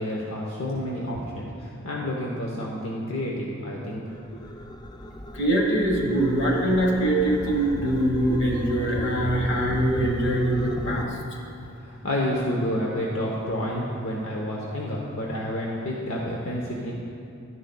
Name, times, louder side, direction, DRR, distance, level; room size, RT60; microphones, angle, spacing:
voice 1, 0.0-4.0 11.6-16.9, left 1 dB, 75° left, -3 dB, 0.9 m, -29 dB
sound 1, 4.1-11.1, left 1 dB, 20° left, 0.4 m, -35 dB
voice 2, 5.3-11.1, right 1 dB, 55° left, 0 dB, 1.4 m, -23 dB
12.0 x 10.5 x 2.3 m, 2.6 s
head